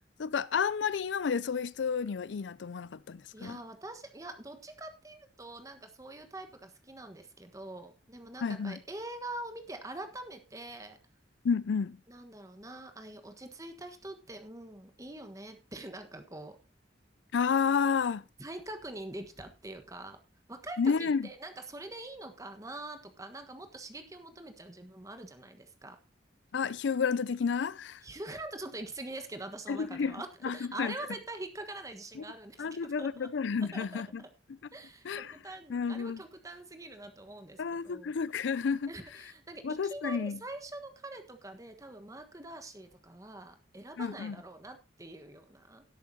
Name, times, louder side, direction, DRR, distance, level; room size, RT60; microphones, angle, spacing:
voice 1, 0.2-3.6 8.4-8.8 11.4-12.0 17.3-18.2 20.8-21.3 26.5-28.0 29.7-30.9 32.2-32.3 32.6-34.2 35.0-35.4 35.7-36.2 37.6-38.9 39.6-40.4 44.0-44.4, left 6 dB, 75° left, 0.4 m, -31 dB
voice 2, 3.3-11.0 12.1-16.6 18.4-20.2 20.5-26.0 28.0-33.3 33.7-34.3 34.7-38.1 38.9-45.8, right 2 dB, 20° right, 1.3 m, -44 dB
17.0 x 8.3 x 2.8 m
head